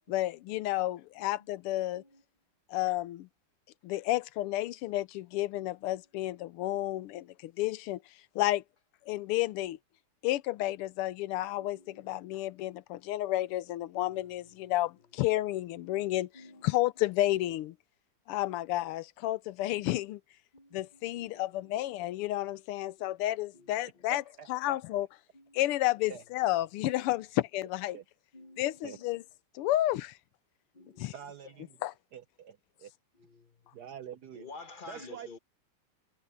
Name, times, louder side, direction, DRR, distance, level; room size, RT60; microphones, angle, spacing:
voice 1, 0.1-2.0 2.7-3.3 3.8-8.0 8.3-8.6 9.1-9.8 10.2-16.3 16.6-17.7 18.3-20.2 20.7-24.2 24.5-25.1 25.5-28.0 28.6-29.2 29.5-30.2 31.0-31.1 31.8-31.9, left 15 dB, 90° left, 1.6 m, -31 dB
voice 2, 11.6-12.3 13.9-14.7 16.3-16.8 20.5-21.8 23.5-24.1 25.3-25.6 26.0-26.1 28.3-29.2 30.7-31.1 33.1-33.8 34.3-35.4, left 3 dB, 30° left, 1.0 m, -53 dB
voice 3, 24.1-24.8 26.1-26.2 27.9-28.0 28.8-29.0 31.1-31.8 32.1-32.9 33.7-34.5 34.9-35.4, right 8 dB, 65° right, 1.0 m, -46 dB
omnidirectional pair, 2.4 m